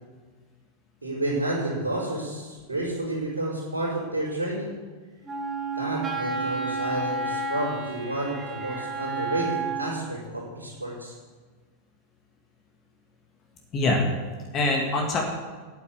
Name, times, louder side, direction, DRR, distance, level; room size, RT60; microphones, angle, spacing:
voice 1, 1.0-4.7 5.7-11.2, right 1 dB, 75° right, -10 dB, 4.2 m, -30 dB
Wind instrument woodwind instrument, 5.2-10.1, right 3 dB, 15° right, 2.2 m, -31 dB
voice 2, 8.7-9.3 13.7-14.1 14.5-15.2, left 2 dB, 30° left, 1 dB, 1.9 m, -25 dB
9.7 x 8.8 x 8.6 m, 1.5 s
figure-of-eight pair, 90°, 0 cm